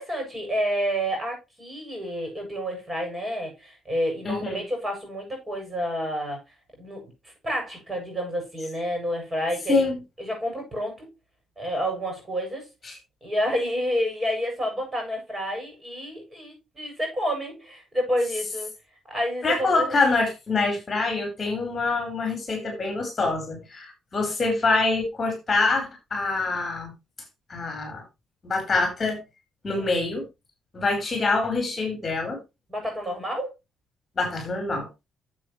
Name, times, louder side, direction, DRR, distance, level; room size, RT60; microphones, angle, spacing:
voice 1, 0.0-6.4 6.8-9.9 10.2-11.1 11.6-12.7 13.2-18.7 19.1-20.0 29.7-30.0 32.7-33.5, equal, 20° right, 7.7 m, -29 dB
voice 2, 4.2-4.6 9.7-10.0 12.8-12.9 19.4-26.9 27.5-28.0 28.4-29.2 29.6-30.2 30.7-32.4 34.2-34.9, left 3 dB, 35° left, 4.9 m, -25 dB
11.5 x 7.9 x 3.3 m
cardioid pair, 90°, 0 cm